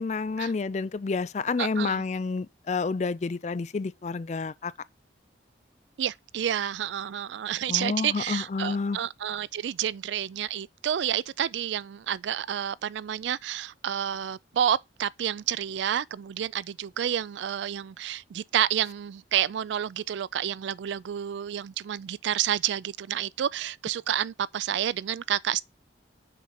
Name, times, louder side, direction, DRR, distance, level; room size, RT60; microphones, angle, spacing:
voice 1, 0.0-4.7 7.7-9.0, left 4 dB, 35° left, 0.3 m, -29 dB
voice 2, 1.6-2.0 6.0-25.6, right 10 dB, 70° right, 0.3 m, -29 dB
6.6 x 4.8 x 4.2 m
head